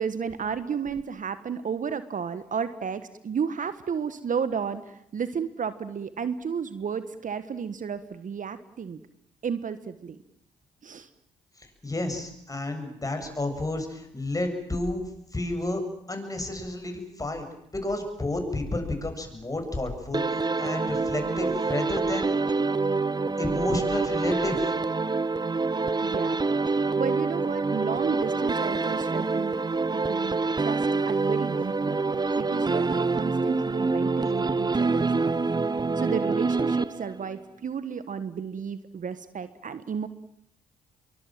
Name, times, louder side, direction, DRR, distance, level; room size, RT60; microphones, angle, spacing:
voice 1, 0.0-9.0 9.4-10.2 10.8-11.1 26.0-26.5 26.9-29.6 29.9-35.4 36.0-40.1, right 6 dB, 50° right, 13 dB, 1.5 m, -33 dB
voice 2, 11.6-15.1 15.3-15.8 16.1-17.4 17.7-22.3 23.4-24.7, left 2 dB, 20° left, 5 dB, 7.9 m, -31 dB
sound 1, 20.1-37.3, right 3 dB, 25° right, 1.0 m, -26 dB
26.0 x 23.5 x 7.7 m, 0.74 s
hypercardioid pair, 45°, 18 cm